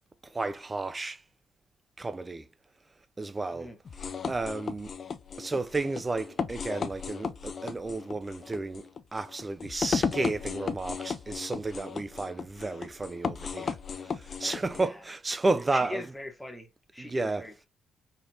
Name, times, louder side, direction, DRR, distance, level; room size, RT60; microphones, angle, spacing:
voice 1, 0.2-1.2 2.0-2.5 3.2-3.7 4.3-4.9 5.4-16.0 17.0-17.5, right 3 dB, 25° right, 0.4 m, -32 dB
sound 1, 3.9-14.9, left 6 dB, 45° left, 0.4 m, -35 dB
voice 2, 15.7-16.7 16.9-17.7, left 1 dB, ahead, 1.1 m, -40 dB
4.5 x 3.3 x 2.7 m
cardioid pair, 90°, 0 cm